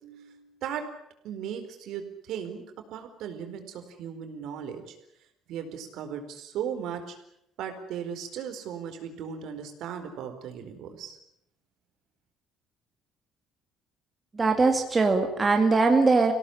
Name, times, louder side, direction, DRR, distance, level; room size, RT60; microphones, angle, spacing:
voice 1, 0.0-0.8 1.2-2.6 2.9-4.9 5.5-7.2 7.6-11.2, right 8 dB, 65° right, 6 dB, 4.5 m, -37 dB
voice 2, 14.3-16.3, right 3 dB, 15° right, 3 dB, 2.2 m, -21 dB
26.0 x 17.5 x 9.9 m, 0.80 s
cardioid pair, 165°, 0 cm